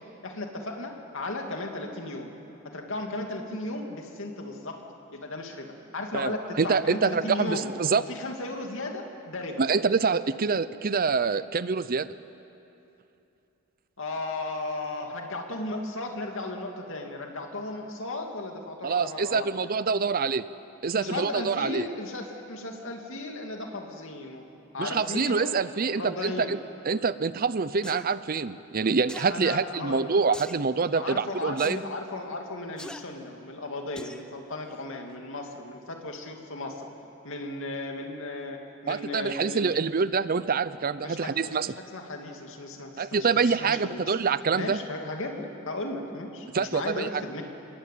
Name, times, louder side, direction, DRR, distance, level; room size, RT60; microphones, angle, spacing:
voice 1, 0.2-2.3 2.7-4.8 5.1-7.7 8.0-9.6 14.0-19.5 20.9-24.5 24.7-25.5 26.0-26.6 29.3-30.1 30.9-36.9 37.2-39.8 41.0-44.1 44.5-47.4, left 2 dB, 60° left, 2 dB, 2.7 m, -35 dB
voice 2, 6.6-8.0 9.6-12.1 18.8-20.4 20.8-21.9 24.8-26.6 26.9-31.8 38.9-41.7 43.0-44.8 46.5-47.2, right 5 dB, 40° right, 15 dB, 0.6 m, -26 dB
sound 1, 27.8-28.1 29.1-29.3 30.3-30.6 31.6-31.8 32.8-33.0 34.0-34.2 34.7-34.8, left 1 dB, 5° left, 0.8 m, -42 dB
28.0 x 21.0 x 8.6 m, 2.9 s
head